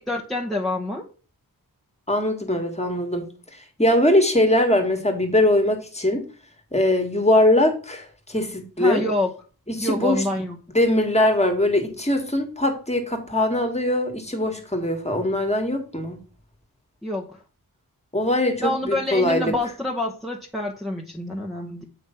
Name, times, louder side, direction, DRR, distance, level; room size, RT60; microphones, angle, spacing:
voice 1, 0.1-1.1 8.8-9.3 9.8-10.6 17.0-17.4 18.6-21.9, left 1 dB, ahead, -3 dB, 1.0 m, -27 dB
voice 2, 2.1-6.2 6.7-9.0 9.7-10.3 10.7-16.2 18.1-19.5, left 1 dB, 15° left, 4 dB, 1.7 m, -21 dB
7.9 x 3.2 x 5.6 m, 0.37 s
wide cardioid pair, 80°, 37 cm